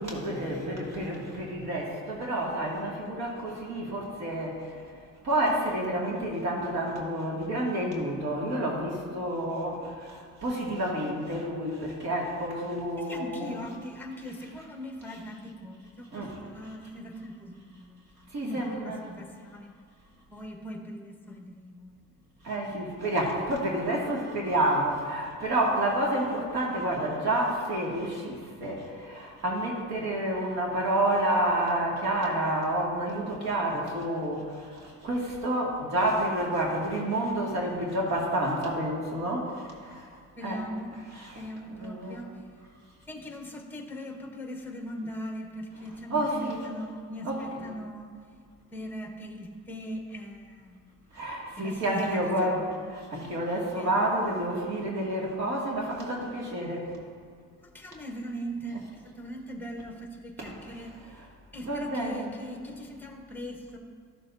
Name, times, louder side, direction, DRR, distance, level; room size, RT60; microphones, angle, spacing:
voice 1, 0.0-4.7 5.2-13.6 14.6-14.7 15.1-15.2 16.1-16.4 18.3-19.1 22.4-40.1 40.4-40.6 40.9-42.2 46.1-46.7 47.2-47.7 51.1-56.8 60.4-61.3 61.6-62.4, right 1 dB, 60° right, -3 dB, 2.1 m, -29 dB
voice 2, 13.0-19.7 20.3-22.0 40.4-40.9 41.4-42.6 43.1-48.4 48.7-50.9 51.5-52.7 53.5-53.9 57.6-61.2 61.5-63.8, equal, 5° left, 3 dB, 1.0 m, -40 dB
13.5 x 6.9 x 2.6 m, 2.1 s
cardioid pair, 125°, 31 cm